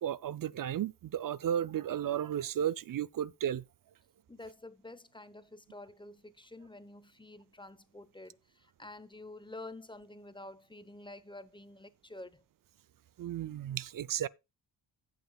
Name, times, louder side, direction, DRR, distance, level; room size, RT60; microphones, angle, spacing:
voice 1, 0.0-3.6 13.2-14.3, right 10 dB, 45° right, 0.5 m, -34 dB
voice 2, 4.3-12.4, left 2 dB, 10° left, 0.8 m, -49 dB
16.5 x 5.8 x 2.3 m
cardioid pair, 65°, 47 cm